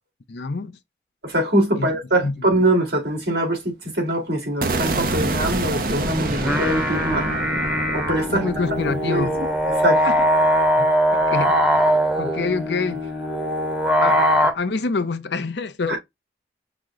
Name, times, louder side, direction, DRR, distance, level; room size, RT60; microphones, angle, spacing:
voice 1, 0.3-0.7 1.8-1.9 2.2-2.5 8.3-9.3 10.0-10.2 10.8-11.8 12.2-13.1 14.0-14.3 14.5-16.0, left 4 dB, 80° left, 0.6 m, -26 dB
voice 2, 1.2-7.2 7.9-8.4 9.0-9.3 9.8-10.0 15.9-16.0, right 1 dB, 75° right, 2.3 m, -22 dB
sound 1, 4.6-10.6, right 2 dB, 50° right, 0.7 m, -27 dB
sound 2, 6.3-14.5, equal, 5° right, 0.8 m, -21 dB
6.0 x 2.1 x 3.7 m
head